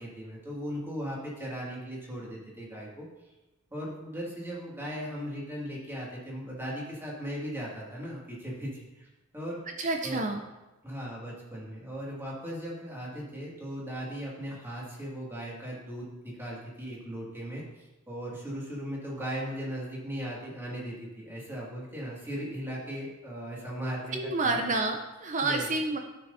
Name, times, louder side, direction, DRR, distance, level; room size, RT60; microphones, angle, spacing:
voice 1, 0.0-3.1 3.7-9.1 9.3-9.6 10.0-10.2 10.8-24.2 24.4-24.6 25.4-25.7, equal, 10° right, -5 dB, 2.1 m, -37 dB
voice 2, 9.8-10.4 24.1-26.0, right 3 dB, 35° right, 4 dB, 0.6 m, -29 dB
14.0 x 6.1 x 2.7 m, 1.0 s
head